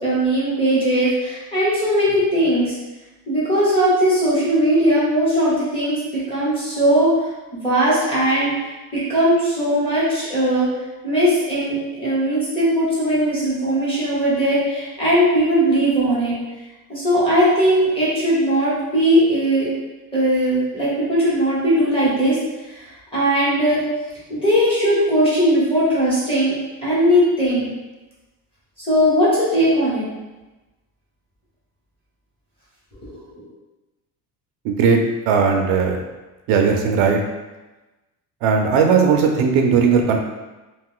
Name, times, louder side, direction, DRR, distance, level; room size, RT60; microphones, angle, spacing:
voice 1, 0.0-2.7 3.3-10.7 11.0-16.3 16.9-19.7 20.1-22.4 22.6-23.8 24.3-26.5 26.8-27.7 28.9-30.0 32.9-33.4, equal, 10° left, -9 dB, 1.0 m, -19 dB
voice 2, 34.6-35.0 35.3-36.0 36.5-37.2 38.4-40.2, right 5 dB, 70° right, 2 dB, 0.5 m, -17 dB
2.5 x 2.3 x 3.7 m, 1.1 s
cardioid pair, 170°, 43 cm